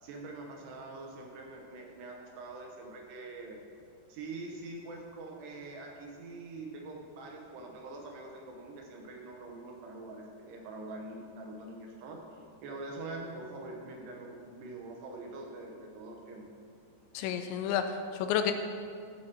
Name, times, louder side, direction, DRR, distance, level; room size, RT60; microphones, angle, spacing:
voice 1, 0.0-3.6 4.1-12.2 12.6-16.4, right 2 dB, 75° right, 1 dB, 2.8 m, -44 dB
voice 2, 17.1-18.5, left 8 dB, 85° left, 7 dB, 2.7 m, -30 dB
13.0 x 5.9 x 4.3 m, 2.3 s
omnidirectional pair, 5.3 m